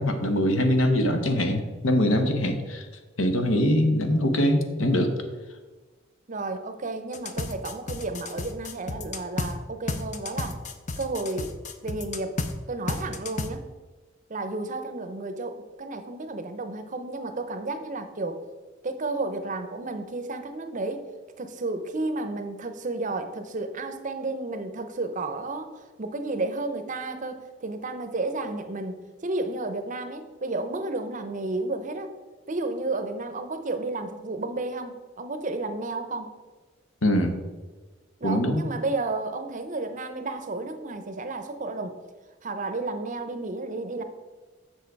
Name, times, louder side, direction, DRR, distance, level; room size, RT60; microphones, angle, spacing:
voice 1, 0.0-2.8 3.2-5.1 37.0-37.4 38.2-38.6, left 1 dB, 80° left, 7 dB, 1.0 m, -23 dB
voice 2, 6.3-10.6 11.0-11.5 11.8-12.4 12.7-13.6 14.3-18.4 18.8-21.1 21.4-32.1 32.5-36.3 38.2-42.0 42.4-44.0, right 2 dB, 40° right, 8 dB, 0.6 m, -32 dB
sound 1, 7.1-9.5 9.9-12.5 12.9-13.5, left 3 dB, 35° left, 0.6 m, -32 dB
7.4 x 6.4 x 4.6 m, 1.3 s
head